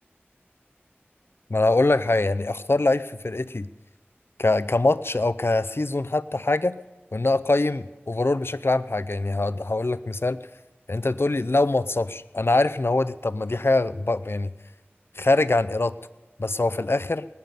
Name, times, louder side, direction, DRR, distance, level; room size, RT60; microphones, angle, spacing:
voice 1, 1.5-3.7 4.4-6.8 7.1-10.4 10.9-14.5 15.2-15.9 16.4-17.3, left 2 dB, 65° left, 14 dB, 0.5 m, -23 dB
19.5 x 6.7 x 9.2 m, 1.2 s
wide cardioid pair, 45°, 4 cm